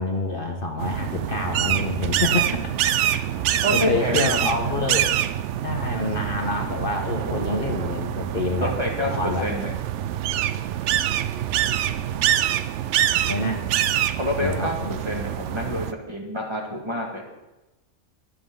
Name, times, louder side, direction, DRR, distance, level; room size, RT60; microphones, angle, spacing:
voice 1, 0.0-2.7 3.1-3.2 3.7-5.1 5.6-8.7 9.0-9.5 13.3-13.6 14.4-15.0, left 2 dB, 45° left, 2 dB, 1.3 m, -27 dB
sound 1, 0.8-15.9, right 11 dB, 70° right, 0.8 m, -25 dB
voice 2, 3.6-4.8 7.2-7.6 8.6-9.7 14.1-14.8 15.1-17.2, equal, 20° right, 0 dB, 1.9 m, -28 dB
22.0 x 7.8 x 3.9 m, 1.0 s
omnidirectional pair, 1.3 m